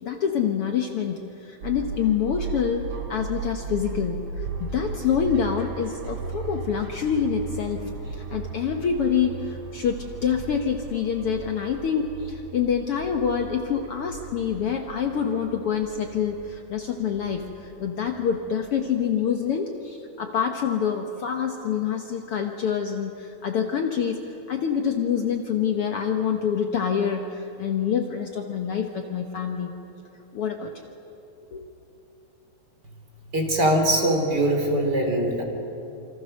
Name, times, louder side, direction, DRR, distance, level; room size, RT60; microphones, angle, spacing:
voice 1, 0.0-2.8 3.1-4.5 4.7-24.2 24.5-29.7 30.3-30.9 31.5-31.7, left 7 dB, 60° left, 4 dB, 1.8 m, -26 dB
sound 1, 1.6-19.1, right 5 dB, 55° right, 2.7 m, -37 dB
voice 2, 33.3-35.4, right 1 dB, 35° right, 2 dB, 3.5 m, -22 dB
27.5 x 26.0 x 6.6 m, 2.9 s
omnidirectional pair, 3.4 m